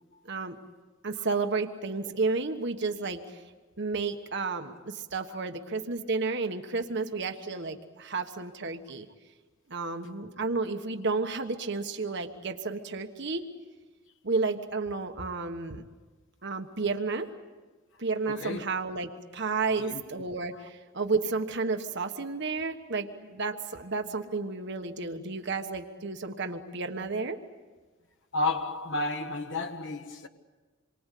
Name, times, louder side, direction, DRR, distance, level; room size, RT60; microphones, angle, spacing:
voice 1, 1.0-3.4 3.8-9.1 9.7-13.5 14.2-15.8 16.4-17.3 18.0-27.4, right 4 dB, 60° right, 1.4 m, -32 dB
voice 2, 18.3-18.6 19.5-20.0 20.5-20.7 28.3-30.3, left 2 dB, 65° left, 1.2 m, -32 dB
27.5 x 23.5 x 8.4 m
head